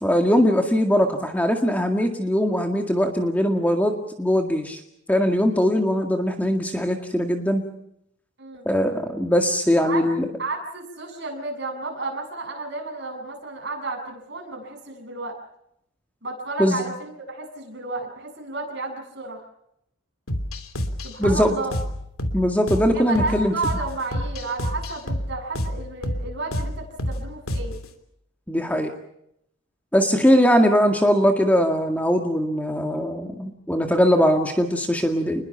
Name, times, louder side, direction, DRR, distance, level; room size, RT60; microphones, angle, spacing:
voice 1, 0.0-4.8 5.1-7.6 8.7-10.3 16.6-16.8 21.2-21.6 22.3-23.5 28.5-28.9 29.9-35.5, equal, 5° left, 4 dB, 2.0 m, -21 dB
voice 2, 10.4-15.4 16.2-19.4 21.0-21.7 22.9-27.8, right 3 dB, 55° right, 3 dB, 7.4 m, -32 dB
sound 1, 20.3-27.9, equal, 90° left, 3.0 m, -29 dB
28.5 x 21.5 x 5.8 m, 0.75 s
head